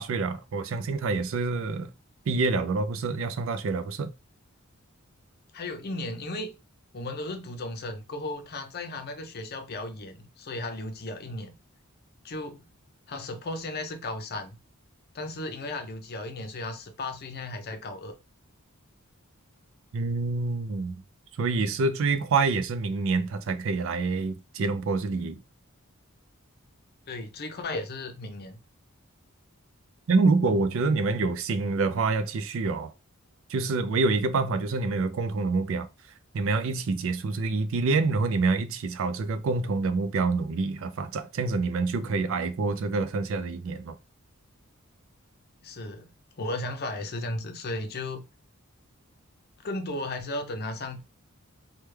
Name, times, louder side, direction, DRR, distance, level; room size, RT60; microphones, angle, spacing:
voice 1, 0.0-1.9 2.3-4.1 19.9-20.9 21.4-25.4 30.1-32.9 33.5-35.9 36.3-44.0, right 3 dB, 65° right, 0.4 m, -27 dB
voice 2, 5.5-6.5 6.9-11.5 12.2-12.6 13.1-14.6 15.1-18.1 27.1-28.6 45.6-46.1 46.4-48.2 49.6-51.0, left 2 dB, 45° left, 0.6 m, -35 dB
3.2 x 2.2 x 3.2 m
head